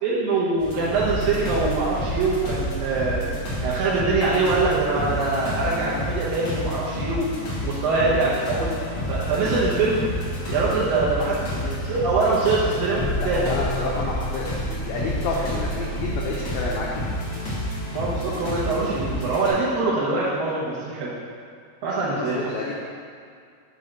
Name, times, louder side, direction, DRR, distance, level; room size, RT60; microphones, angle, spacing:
voice 1, 0.0-3.3 3.6-7.4 7.6-8.7 9.1-10.1 10.5-11.6 11.8-13.6 17.9-21.1 21.8-22.5, right 3 dB, 75° right, -7 dB, 2.2 m, -23 dB
sound 1, 0.6-19.5, equal, 45° left, 1.9 m, -29 dB
voice 2, 13.2-17.1 22.1-22.7, left 3 dB, 85° left, -4 dB, 2.1 m, -30 dB
8.2 x 3.6 x 6.4 m, 2.2 s
omnidirectional pair, 5.2 m